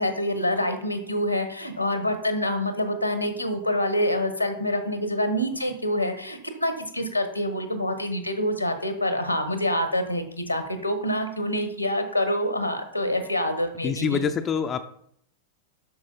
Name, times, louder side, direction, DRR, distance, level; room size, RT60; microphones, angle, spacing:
voice 1, 0.0-14.3, left 1 dB, 90° left, 8 dB, 1.3 m, -26 dB
voice 2, 13.8-14.8, left 7 dB, 25° left, 7 dB, 0.5 m, -25 dB
8.5 x 6.3 x 4.1 m, 0.67 s
figure-of-eight pair, 90°, 0 cm